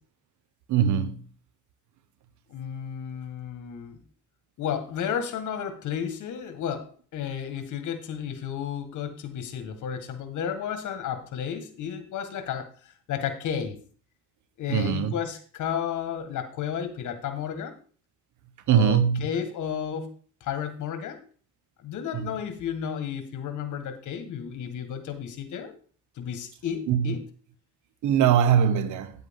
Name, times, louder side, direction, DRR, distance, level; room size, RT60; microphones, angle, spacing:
voice 1, 0.7-1.2 14.7-15.1 18.7-19.3 22.1-22.3 26.9-27.1 28.0-29.1, right 8 dB, 75° right, 1.1 m, -22 dB
voice 2, 2.5-4.0 4.6-13.8 14.6-17.8 18.7-20.1 20.4-21.2 21.8-25.7 26.2-27.2, left 8 dB, 75° left, 1.7 m, -32 dB
9.6 x 8.1 x 3.7 m
cardioid pair, 90°, 30 cm